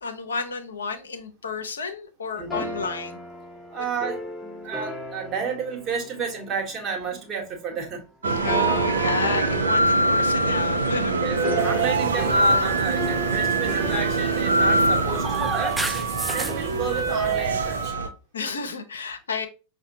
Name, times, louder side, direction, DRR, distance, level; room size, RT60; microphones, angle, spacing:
voice 1, 0.0-3.2 8.4-11.4 16.4-16.8 18.3-19.5, left 4 dB, 70° left, 0.6 m, -31 dB
voice 2, 2.3-2.7 3.7-4.3 4.6-8.1 11.2-15.8 16.3-17.9, right 5 dB, 30° right, 1.2 m, -31 dB
sound 1, 2.5-7.1 8.2-15.4, left 1 dB, 10° left, 0.8 m, -36 dB
sound 2, 8.2-18.1, right 2 dB, 70° right, 0.5 m, -23 dB
sound 3, 11.6-17.9, right 2 dB, 5° right, 0.3 m, -34 dB
5.8 x 2.2 x 2.7 m
figure-of-eight pair, 90°, 0 cm